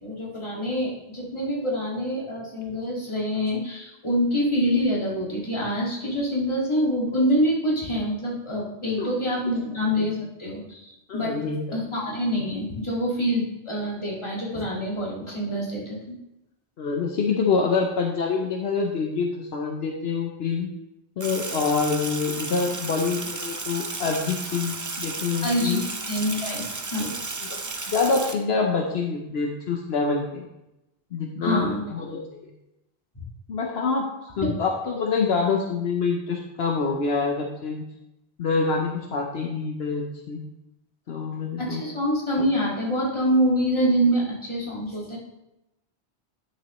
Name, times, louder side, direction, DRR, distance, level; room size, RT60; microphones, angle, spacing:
voice 1, 0.0-11.4 11.7-16.0 25.4-26.6 26.9-27.1 31.4-31.8 33.2-33.3 41.6-45.2, equal, 25° left, -4 dB, 1.9 m, -26 dB
voice 2, 11.1-11.8 16.8-20.7 21.2-25.8 27.0-27.1 27.4-30.4 31.1-32.5 33.5-34.1 34.4-37.8 38.4-40.4 41.1-41.8, left 4 dB, 70° left, 1 dB, 1.0 m, -26 dB
Sink (filling or washing), 21.2-28.3, right 3 dB, 30° right, 0.4 m, -33 dB
10.0 x 6.0 x 3.0 m, 0.91 s
omnidirectional pair, 1.1 m